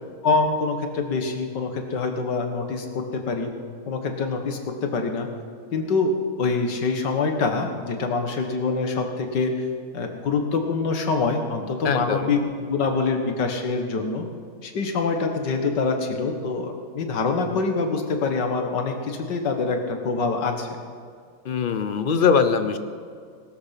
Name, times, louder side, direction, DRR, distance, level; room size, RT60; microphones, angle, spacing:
voice 1, 0.2-3.5 3.9-5.3 5.7-9.6 9.9-14.3 14.6-20.7, left 4 dB, 85° left, 5 dB, 2.1 m, -25 dB
voice 2, 11.8-12.3 21.4-22.8, left 6 dB, 55° left, 10 dB, 0.6 m, -21 dB
19.0 x 13.0 x 5.8 m, 2.1 s
omnidirectional pair, 1.8 m